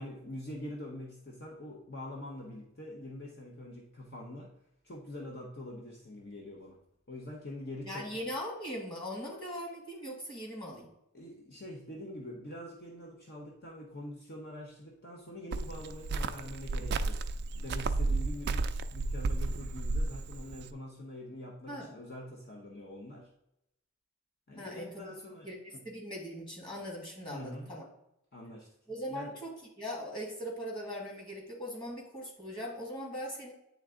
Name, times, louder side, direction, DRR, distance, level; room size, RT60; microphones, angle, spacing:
voice 1, 0.0-4.5 4.8-6.8 7.1-8.2 11.1-23.3 24.5-25.5 25.7-25.8 27.3-27.7 28.3-28.7 29.1-29.3, left 1 dB, 45° left, -1 dB, 0.8 m, -44 dB
voice 2, 7.8-10.9 21.7-21.9 24.6-25.1 25.4-27.8 28.9-33.5, equal, 20° left, -2 dB, 1.8 m, -40 dB
Cricket, 15.5-20.7, right 3 dB, 50° right, 0.3 m, -33 dB
8.9 x 3.5 x 3.7 m, 0.84 s
head